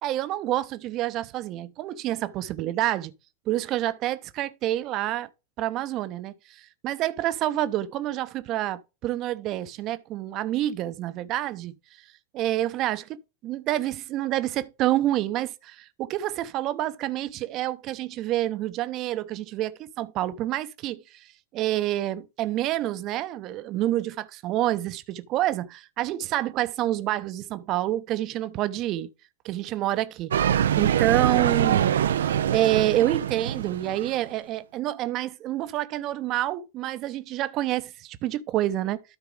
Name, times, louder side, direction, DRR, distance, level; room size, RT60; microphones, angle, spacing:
voice 1, 0.0-3.1 3.5-5.3 5.6-11.7 12.3-13.1 13.4-21.0 21.5-24.1 24.4-29.1 29.4-39.0, right 14 dB, 35° right, 0.8 m, -28 dB
sound 1, 30.3-34.3, right 9 dB, 65° right, 0.5 m, -24 dB
12.5 x 4.6 x 3.6 m
figure-of-eight pair, 90°, 0 cm